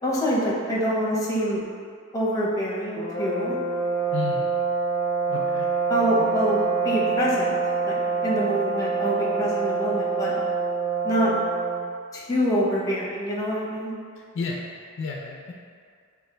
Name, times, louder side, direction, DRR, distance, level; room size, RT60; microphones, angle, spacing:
voice 1, 0.0-1.6 2.1-3.6 5.9-7.6 7.8-10.4 11.0-11.3 12.1-13.9, equal, 15° left, -6 dB, 0.6 m, -25 dB
sound 1, 2.9-11.9, right 4 dB, 65° right, 1.4 m, -26 dB
voice 2, 4.1-4.5 5.3-5.7 14.3-14.6 15.0-15.5, left 4 dB, 55° left, -1 dB, 0.3 m, -31 dB
4.8 x 2.3 x 3.2 m, 2.1 s
head